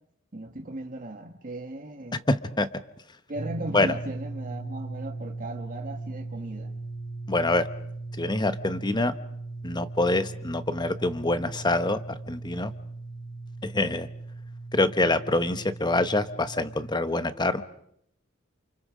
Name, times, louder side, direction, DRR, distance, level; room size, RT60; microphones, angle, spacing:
voice 1, 0.3-2.2 3.3-6.8, right 1 dB, 40° right, 1.6 m, -37 dB
voice 2, 2.3-2.7 3.7-4.0 7.3-7.7 8.2-9.1 9.6-12.7 13.6-14.1 14.7-17.6, left 2 dB, 20° left, 1.1 m, -25 dB
sound 1, 3.4-17.0, right 2 dB, 80° left, 4.7 m, -38 dB
29.0 x 28.5 x 5.1 m
head